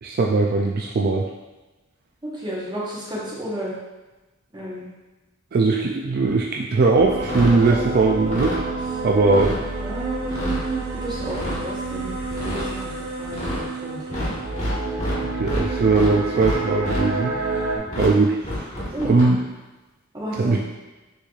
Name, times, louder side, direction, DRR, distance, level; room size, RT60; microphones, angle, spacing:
voice 1, 0.0-1.3 5.5-8.6 9.0-9.6 15.4-17.3 18.0-19.4 20.3-20.6, right 3 dB, 45° right, 0 dB, 0.3 m, -20 dB
voice 2, 2.2-3.7 4.5-4.9 7.6-7.8 9.8-12.9 13.2-14.4 18.9-19.2 20.1-20.6, right 1 dB, 20° right, -6 dB, 1.1 m, -32 dB
sound 1, 6.9-17.8, right 2 dB, 85° right, 0.8 m, -29 dB
sound 2, 7.1-7.6 8.1-8.6 9.2-9.6 10.2-10.6 11.2-11.6 12.2-12.6 13.2-13.6 14.1-15.6 15.9-17.0 17.9-18.1 18.4-19.2, left 1 dB, 35° left, 1.4 m, -29 dB
6.5 x 3.1 x 2.4 m, 1.1 s
head